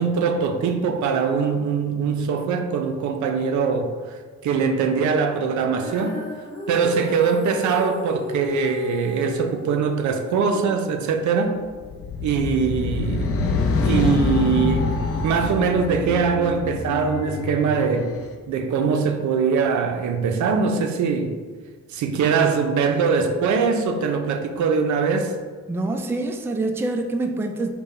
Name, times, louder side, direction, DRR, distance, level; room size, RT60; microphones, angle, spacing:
voice 1, 0.0-3.9 4.4-6.2 6.7-11.5 12.2-13.3 13.8-14.9 15.2-18.1 18.5-21.3 21.9-25.3, right 5 dB, 70° right, 6 dB, 0.6 m, -22 dB
Female singing, 5.8-12.0, left 3 dB, 10° left, 1.1 m, -35 dB
sound 1, 11.8-18.3, left 3 dB, 50° left, 0.6 m, -25 dB
voice 2, 25.7-27.7, right 2 dB, 10° right, 5 dB, 0.3 m, -25 dB
5.3 x 2.2 x 4.2 m, 1.5 s
cardioid pair, 90°, 30 cm